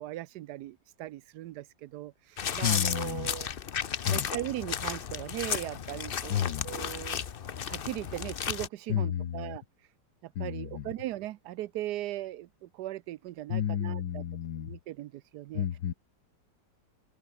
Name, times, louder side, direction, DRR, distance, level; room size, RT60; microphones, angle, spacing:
voice 1, 0.0-3.5 4.1-6.4 6.6-7.2 7.7-9.6 10.2-14.2 14.6-15.7, right 15 dB, 70° right, 1.1 m, -38 dB
sound 1, 2.4-8.7, left 8 dB, 50° left, 0.6 m, -34 dB
voice 2, 2.6-3.3 4.0-4.3 6.3-6.7 8.9-9.6 10.4-10.9 13.5-14.8 15.5-15.9, left 10 dB, 80° left, 1.9 m, -31 dB
omnidirectional pair, 2.0 m